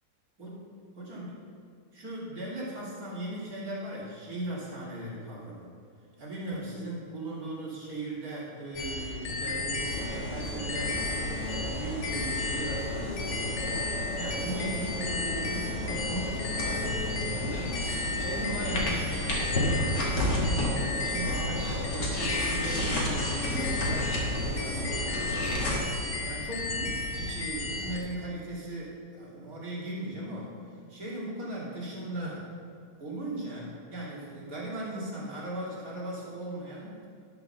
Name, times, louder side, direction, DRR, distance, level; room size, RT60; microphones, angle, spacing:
voice 1, 1.0-1.4 1.9-5.7 6.2-11.1 11.4-17.8 18.2-20.1 20.7-25.8 26.2-30.5 30.9-32.4 33.0-37.0, right 1 dB, 40° right, -6 dB, 2.7 m, -38 dB
sound 1, 8.8-28.0, left 2 dB, 90° left, 2.0 m, -34 dB
sound 2, 9.9-25.8, left 1 dB, 55° left, 2.2 m, -32 dB
sound 3, 11.0-17.1, left 5 dB, 70° left, 1.7 m, -46 dB
11.5 x 5.0 x 6.5 m, 2.2 s
omnidirectional pair, 2.4 m